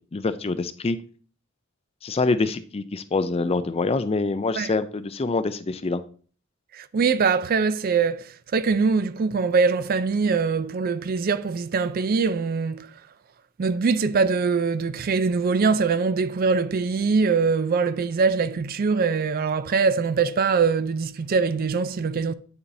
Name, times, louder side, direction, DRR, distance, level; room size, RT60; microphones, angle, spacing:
voice 1, 0.1-1.0 2.0-6.0, left 3 dB, 25° left, 0.4 m, -25 dB
voice 2, 6.7-8.3 8.5-12.9 13.6-22.3, right 5 dB, 45° right, 0.4 m, -23 dB
8.9 x 6.9 x 2.7 m
head